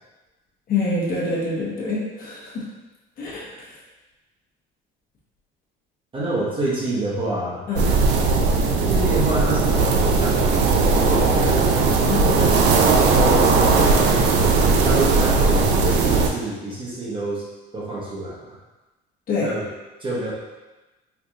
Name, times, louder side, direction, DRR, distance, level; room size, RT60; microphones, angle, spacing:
voice 1, 0.7-2.6 3.2-3.5 7.7-7.9 12.1-12.3 19.3-19.5, left 3 dB, 45° left, -5 dB, 1.0 m, -25 dB
voice 2, 6.1-7.6 8.9-11.7 12.3-14.4 14.8-17.4 17.7-18.6 19.4-19.7 20.0-20.3, right 2 dB, 25° right, -5 dB, 0.9 m, -27 dB
sound 1, 7.8-16.3, right 4 dB, 60° right, 0.5 m, -18 dB
4.6 x 2.5 x 2.5 m, 1.1 s
cardioid pair, 135°, 20 cm